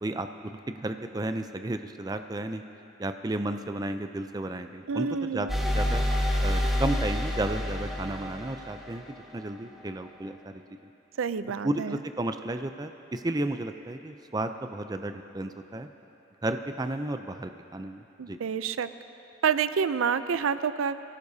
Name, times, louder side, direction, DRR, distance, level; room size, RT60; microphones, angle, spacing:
voice 1, 0.0-2.6 3.0-6.0 6.4-9.0 9.3-10.6 11.6-15.9 16.4-18.4, right 1 dB, 20° right, 7 dB, 0.4 m, -33 dB
voice 2, 4.9-5.5 11.2-12.0 18.2-18.9 19.4-21.0, right 6 dB, 90° right, 13 dB, 0.5 m, -28 dB
sound 1, 5.5-9.2, left 1 dB, ahead, 1.7 m, -28 dB
22.5 x 17.0 x 2.8 m, 2.9 s
head